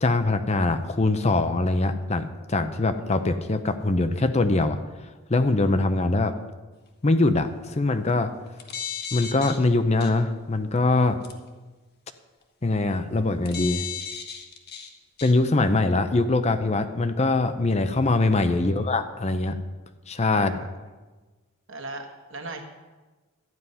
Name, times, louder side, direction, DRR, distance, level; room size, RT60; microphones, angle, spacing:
voice 1, 0.0-4.8 5.3-6.4 7.0-8.3 9.1-11.2 12.6-13.8 15.2-19.6 20.1-20.6, left 2 dB, 30° left, 9 dB, 0.6 m, -23 dB
sound 1, 8.5-9.6 10.0-10.1 11.2-11.3 13.5-14.9 15.2-15.3, left 8 dB, 50° left, 1.3 m, -34 dB
voice 2, 20.3-20.7 21.7-22.6, right 2 dB, 60° right, 4 dB, 1.5 m, -38 dB
12.0 x 9.4 x 5.5 m, 1.3 s
head